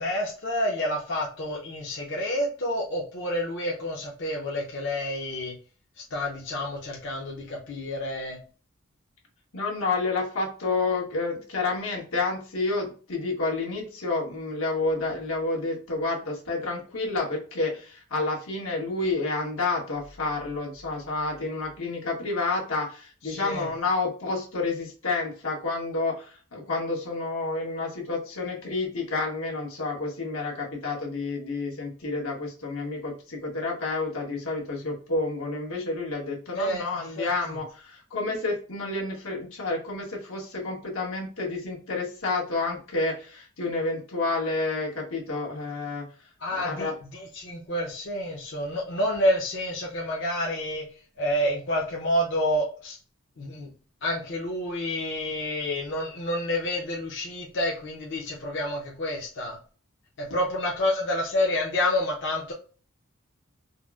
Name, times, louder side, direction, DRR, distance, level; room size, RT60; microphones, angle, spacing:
voice 1, 0.0-5.5 6.0-8.4 23.2-23.7 36.5-36.9 37.2-37.6 46.4-50.8 51.2-53.0 53.4-53.7 54.0-59.6 60.2-62.5, left 1 dB, 60° left, -2 dB, 0.6 m, -29 dB
voice 2, 9.5-46.0 46.5-46.9, left 3 dB, 90° left, -1 dB, 1.2 m, -29 dB
4.0 x 2.0 x 2.3 m, 0.39 s
head